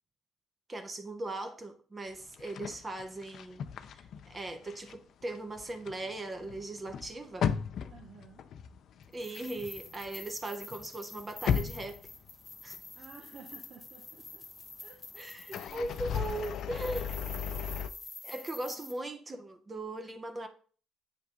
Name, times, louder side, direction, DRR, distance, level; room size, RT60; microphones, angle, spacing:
voice 1, 0.7-7.5 9.1-12.0 12.6-12.8 15.2-17.2 18.2-20.5, right 2 dB, 25° right, 0.9 m, -39 dB
sound 1, 2.3-5.0 5.2-10.4 10.7-12.8 13.1-13.2 15.4-17.9, left 8 dB, 60° left, 0.5 m, -36 dB
voice 2, 7.9-8.4 12.9-14.4 14.8-15.7 18.6-18.9, right 5 dB, 60° right, 1.1 m, -54 dB
sound 2, 9.1-18.9, left 3 dB, 25° left, 1.4 m, -48 dB
8.5 x 3.4 x 5.1 m
cardioid pair, 90°, 0 cm